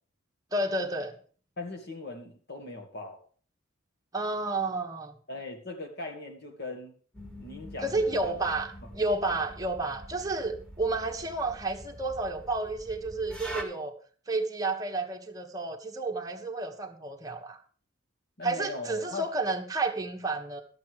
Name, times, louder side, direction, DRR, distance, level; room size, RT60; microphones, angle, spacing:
voice 1, 0.5-1.1 4.1-5.2 7.8-8.7 8.9-13.9 14.3-17.6 18.4-20.6, right 2 dB, 20° right, 2 dB, 1.4 m, -31 dB
voice 2, 1.6-3.2 5.3-7.0 7.4-8.4 18.4-19.3, left 3 dB, 55° left, 3 dB, 2.4 m, -39 dB
sound 1, 7.1-13.6, right 1 dB, 5° left, 2.2 m, -44 dB
12.0 x 8.3 x 5.0 m, 0.43 s
head